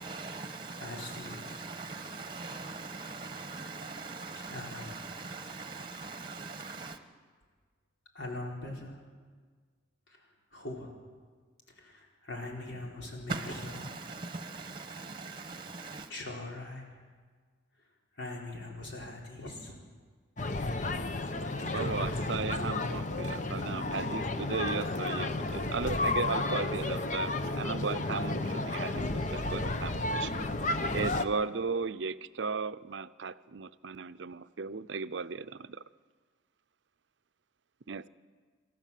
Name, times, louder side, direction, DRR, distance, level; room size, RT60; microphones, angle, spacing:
voice 1, 0.0-7.0 13.3-16.1, right 3 dB, 25° right, 8 dB, 1.2 m, -41 dB
voice 2, 0.8-1.8 4.3-4.9 8.1-9.0 10.1-10.9 11.7-13.9 16.1-16.9 17.8-17.9 18.1-19.8 21.2-22.7, left 2 dB, 75° left, -1 dB, 4.5 m, -42 dB
sound 1, 20.4-31.3, left 2 dB, 40° left, 0.8 m, -32 dB
voice 3, 21.6-29.0 29.3-30.3 30.9-35.8 37.9-38.1, right 5 dB, 75° right, 14 dB, 0.6 m, -36 dB
27.5 x 13.0 x 7.5 m, 1.5 s
head